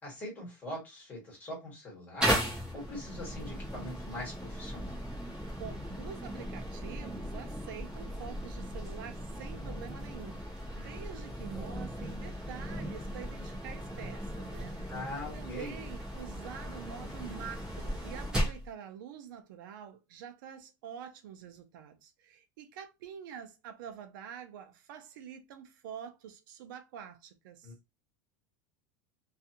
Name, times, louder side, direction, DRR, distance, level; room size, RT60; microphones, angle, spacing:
voice 1, 0.0-2.4 2.7-5.0 14.9-15.8 27.6-27.7, left 1 dB, 15° left, 1.4 m, -42 dB
sound 1, 2.2-18.7, equal, 5° right, 0.9 m, -37 dB
voice 2, 5.6-14.8 15.3-27.7, right 8 dB, 80° right, 0.5 m, -46 dB
2.5 x 2.4 x 2.8 m
supercardioid pair, 175°, 11 cm